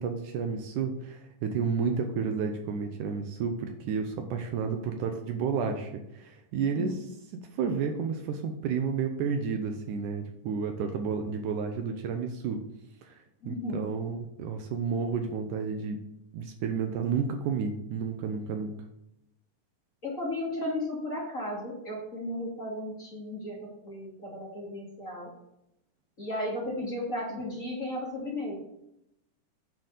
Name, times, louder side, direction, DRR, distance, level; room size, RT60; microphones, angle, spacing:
voice 1, 0.0-7.1 7.5-12.7 13.0-16.0 16.3-18.7, right 5 dB, 75° right, 5 dB, 2.1 m, -31 dB
voice 2, 13.4-13.9 20.0-23.5 23.8-25.3 26.2-28.6, left 1 dB, 25° left, -4 dB, 2.3 m, -34 dB
9.6 x 4.7 x 6.5 m, 0.81 s
omnidirectional pair, 3.9 m